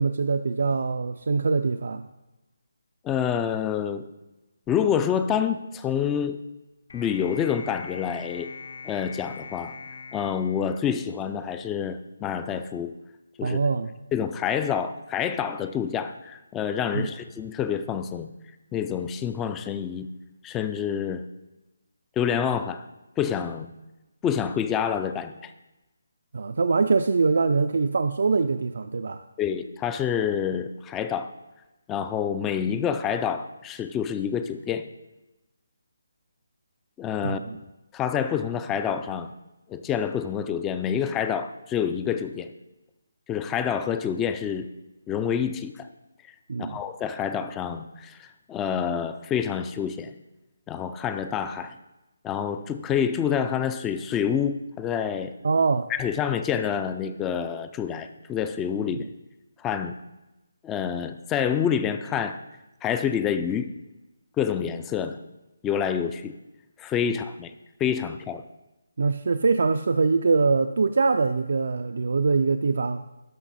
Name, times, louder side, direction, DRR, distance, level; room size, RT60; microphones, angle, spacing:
voice 1, 0.0-2.0 13.4-13.9 16.9-17.1 26.3-29.2 37.2-37.6 46.5-46.8 55.4-55.9 58.9-59.1 69.0-73.0, right 4 dB, 60° right, 8 dB, 0.4 m, -23 dB
voice 2, 3.0-4.1 4.7-6.4 6.9-8.5 8.8-9.8 10.1-12.9 13.4-13.6 14.1-18.3 18.7-20.1 20.4-21.3 22.2-22.9 23.2-23.7 24.2-25.5 29.4-31.3 31.9-34.9 37.0-37.4 37.9-39.3 39.7-42.5 43.3-44.7 45.1-45.9 46.6-50.1 50.7-51.7 52.2-55.4 55.9-59.0 59.6-59.9 60.6-62.4 62.8-63.7 64.4-65.2 65.6-66.4 66.8-67.5 67.8-68.4, left 8 dB, 10° left, 10 dB, 0.3 m, -27 dB
sound 1, 6.9-11.4, left 4 dB, 60° left, 0.9 m, -42 dB
12.0 x 5.6 x 4.1 m, 1.0 s
figure-of-eight pair, 165°, 0 cm